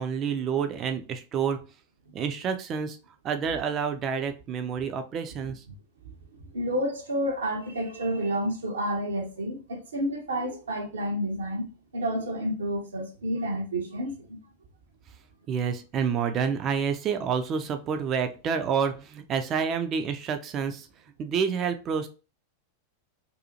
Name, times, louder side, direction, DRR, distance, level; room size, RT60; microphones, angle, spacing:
voice 1, 0.0-1.6 2.1-3.0 3.2-5.6 15.5-20.9 21.2-22.1, right 6 dB, 30° right, 0.4 m, -28 dB
voice 2, 6.5-11.7 11.9-14.4, equal, 70° right, 0.6 m, -30 dB
2.6 x 2.3 x 2.6 m
figure-of-eight pair, 90°, 0 cm